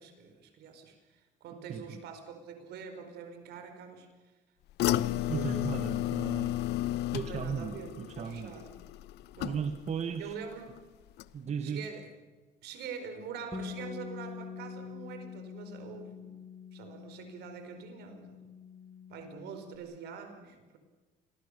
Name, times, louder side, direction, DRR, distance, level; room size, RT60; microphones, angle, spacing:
voice 1, 0.0-4.1 5.3-5.7 7.1-8.7 9.4-9.7 10.2-10.8 11.6-12.1 12.6-16.3 16.7-18.4 19.1-20.8, right 6 dB, 75° right, 7 dB, 4.9 m, -45 dB
voice 2, 1.7-2.0 5.3-6.6 7.1-8.5 9.4-10.3 11.3-11.8, right 7 dB, 40° right, 8 dB, 1.5 m, -36 dB
sound 1, 4.8-10.0 10.3-10.8 11.2-11.3, left 14 dB, 80° left, 0.9 m, -33 dB
Bass guitar, 13.5-19.8, left 6 dB, 15° left, 5.7 m, -45 dB
28.5 x 22.5 x 6.8 m, 1.3 s
cardioid pair, 110°, 17 cm